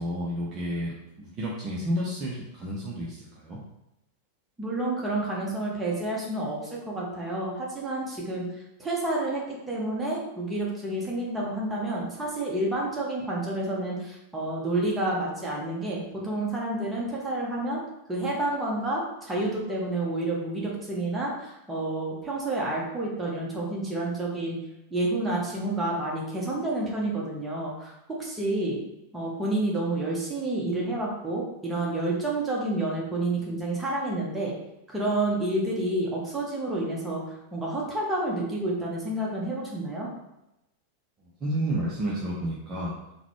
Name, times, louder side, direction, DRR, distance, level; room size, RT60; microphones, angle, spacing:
voice 1, 0.0-3.6 41.4-42.9, right 1 dB, 30° right, -5 dB, 0.6 m, -31 dB
voice 2, 4.6-8.4 8.8-17.8 18.1-24.6 24.9-28.8 29.1-34.5 34.9-40.1, right 2 dB, 10° right, -4 dB, 1.0 m, -29 dB
3.8 x 2.2 x 3.0 m, 0.89 s
figure-of-eight pair, 90°, 0 cm